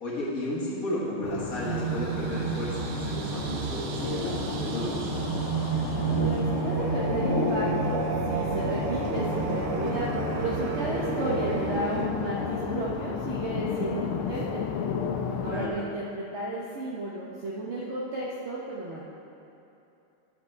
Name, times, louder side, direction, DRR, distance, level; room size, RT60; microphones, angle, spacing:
voice 1, 0.0-5.2 15.5-15.8, left 1 dB, 45° left, -6 dB, 1.7 m, -33 dB
sound 1, 1.2-15.7, left 6 dB, 75° left, 1.4 m, -32 dB
sound 2, 1.6-12.1, right 6 dB, 90° right, 1.6 m, -31 dB
voice 2, 6.2-10.1 10.3-14.6 15.4-19.1, right 2 dB, 55° right, -5 dB, 0.7 m, -33 dB
11.0 x 6.0 x 4.5 m, 2.8 s
omnidirectional pair, 2.4 m